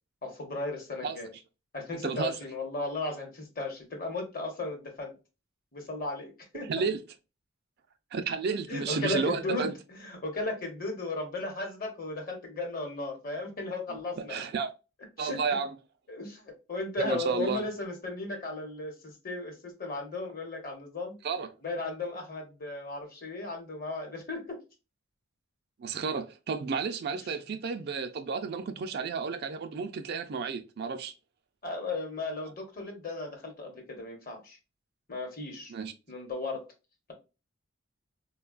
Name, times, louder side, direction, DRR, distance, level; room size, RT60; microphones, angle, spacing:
voice 1, 0.2-1.3 1.7-5.1 5.7-6.7 8.7-14.4 15.2-15.4 16.1-21.2 21.6-24.6 31.6-34.6 35.1-35.7 36.1-36.7, left 2 dB, 45° left, 1.0 m, -36 dB
voice 2, 2.0-2.3 6.7-7.0 8.1-9.7 13.9-14.7 15.2-15.7 17.0-17.6 21.2-21.5 25.8-31.1 35.7-35.9, right 5 dB, 50° right, 0.4 m, -32 dB
3.7 x 2.2 x 2.3 m
head